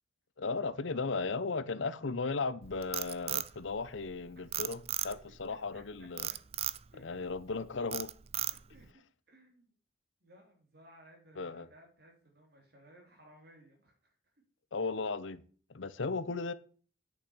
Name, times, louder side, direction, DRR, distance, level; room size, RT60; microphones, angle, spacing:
voice 1, 0.4-6.3 7.0-8.1 11.4-11.7 14.7-15.4 15.7-16.5, left 4 dB, 75° left, 0.8 m, -36 dB
Frog, 2.6-4.1 4.5-5.4 6.2-6.8 7.3-7.6 7.9-8.8, right 12 dB, 30° right, 0.4 m, -35 dB
voice 2, 5.5-6.1 6.9-7.4 8.5-9.0 9.3-9.7 10.2-14.3, right 1 dB, 50° right, 3.7 m, -60 dB
8.6 x 6.8 x 6.4 m
head